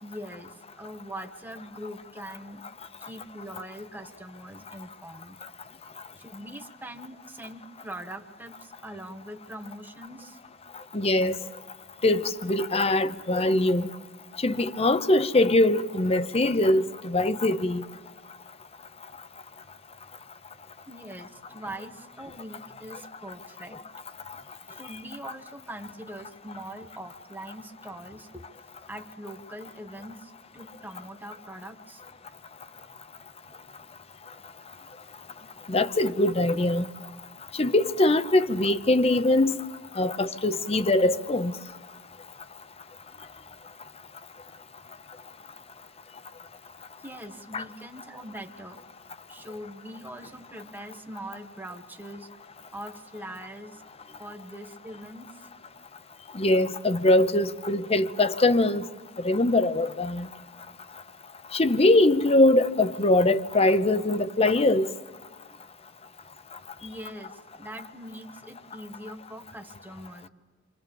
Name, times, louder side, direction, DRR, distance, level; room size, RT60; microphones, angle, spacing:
voice 1, 0.0-2.6 3.0-5.4 6.2-10.4 20.9-23.8 24.7-28.5 28.9-32.0 34.8-34.9 47.0-48.8 49.3-52.3 52.7-53.8 54.2-55.5 66.8-70.3, right 1 dB, 10° right, 1.4 m, -42 dB
voice 2, 10.9-11.4 12.0-13.9 14.4-17.8 35.7-36.9 37.6-39.7 40.0-41.5 47.5-47.6 56.3-58.9 59.2-60.3 61.5-64.9, left 2 dB, 30° left, 0.8 m, -22 dB
28.5 x 25.5 x 7.1 m
head